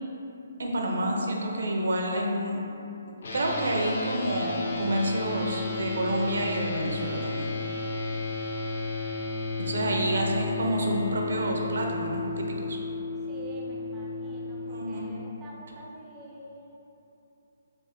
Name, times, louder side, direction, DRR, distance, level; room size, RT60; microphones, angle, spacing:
voice 1, 0.6-2.6 3.3-7.5 9.6-12.8 14.7-15.1, right 1 dB, 75° right, 0 dB, 0.5 m, -28 dB
sound 1, 3.2-15.1, left 3 dB, 60° left, 0.6 m, -33 dB
voice 2, 9.9-10.6 13.3-16.8, right 1 dB, 10° right, -5 dB, 0.3 m, -45 dB
3.4 x 2.3 x 3.5 m, 3.0 s
hypercardioid pair, 165°, 0 cm